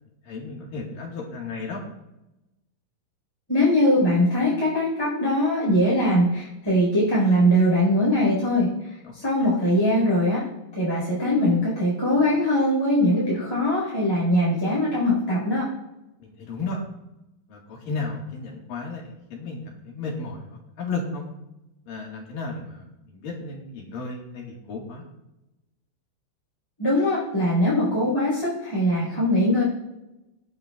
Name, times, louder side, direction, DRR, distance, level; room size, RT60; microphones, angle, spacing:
voice 1, 0.2-1.8 9.0-9.1 16.2-16.8 17.5-21.2 21.9-25.0, left 3 dB, 60° left, -2 dB, 2.7 m, -34 dB
voice 2, 3.5-8.7 9.1-10.5 10.7-15.7 26.8-29.6, left 1 dB, 5° left, -7 dB, 3.4 m, -21 dB
19.0 x 8.7 x 2.4 m, 0.95 s
omnidirectional pair, 5.6 m